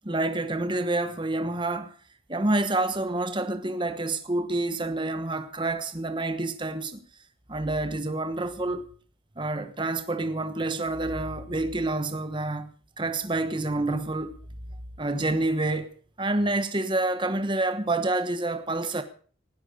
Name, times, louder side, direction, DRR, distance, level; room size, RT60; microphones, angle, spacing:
voice 1, 0.0-1.9 2.3-7.0 7.5-8.9 9.4-14.4 15.0-15.9 16.2-19.0, right 2 dB, 25° right, 1.2 m, -28 dB
19.0 x 12.0 x 5.2 m
head